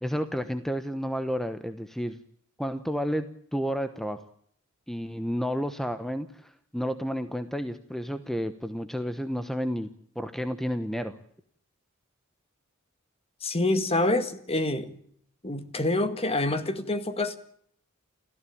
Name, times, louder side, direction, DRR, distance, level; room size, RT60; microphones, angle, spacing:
voice 1, 0.0-2.2 2.6-4.2 4.9-9.9 10.1-11.2, equal, ahead, 9 dB, 1.0 m, -31 dB
voice 2, 13.4-15.0 15.4-17.4, left 2 dB, 30° left, 10 dB, 1.9 m, -27 dB
29.5 x 14.5 x 8.6 m, 0.67 s
head